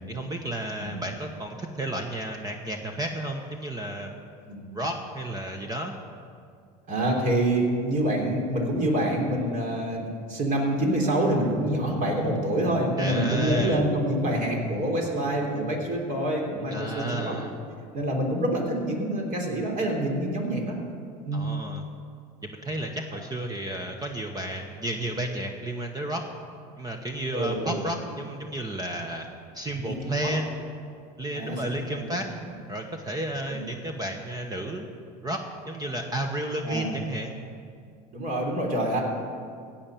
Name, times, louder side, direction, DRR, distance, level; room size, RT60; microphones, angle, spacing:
voice 1, 0.1-4.1 4.7-5.9 13.0-13.8 16.7-17.5 21.3-21.8 22.4-26.2 26.8-29.3 29.5-30.6 31.2-32.3 32.7-34.8 35.2-37.4, right 1 dB, 20° right, 3 dB, 1.1 m, -32 dB
voice 2, 6.9-17.3 17.9-20.8 21.2-21.5 27.3-27.8 29.8-30.4 31.3-31.6 31.9-32.2 32.4-32.5 33.5-33.7 36.6-36.9 38.1-39.0, right 1 dB, 40° right, 0 dB, 3.5 m, -26 dB
16.5 x 5.7 x 8.9 m, 2.3 s
supercardioid pair, 95°, 20 cm